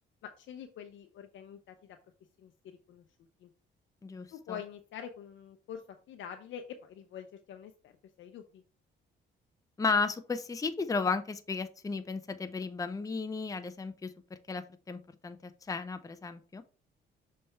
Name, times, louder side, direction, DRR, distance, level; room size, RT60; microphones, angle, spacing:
voice 1, 0.2-2.0 2.4-3.5 4.3-7.9 8.2-8.6, left 8 dB, 75° left, 5 dB, 0.7 m, -46 dB
voice 2, 4.0-4.6 9.8-14.1 14.5-16.6, left 4 dB, 15° left, 9 dB, 0.6 m, -34 dB
6.6 x 3.4 x 4.4 m, 0.37 s
cardioid pair, 90°, 20 cm